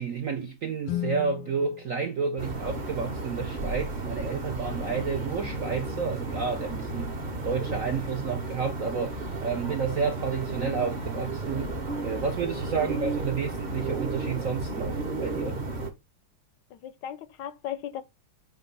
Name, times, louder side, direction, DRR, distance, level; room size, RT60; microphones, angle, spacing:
voice 1, 0.0-7.2 7.4-11.7 12.0-15.6, right 5 dB, 65° right, 0.8 m, -30 dB
Guitar, 0.8-3.4, left 13 dB, 90° left, 1.7 m, -37 dB
sound 1, 2.4-15.9, right 2 dB, 35° right, 0.8 m, -33 dB
voice 2, 16.7-18.0, left 10 dB, 70° left, 1.1 m, -37 dB
7.6 x 2.8 x 5.3 m
omnidirectional pair, 2.4 m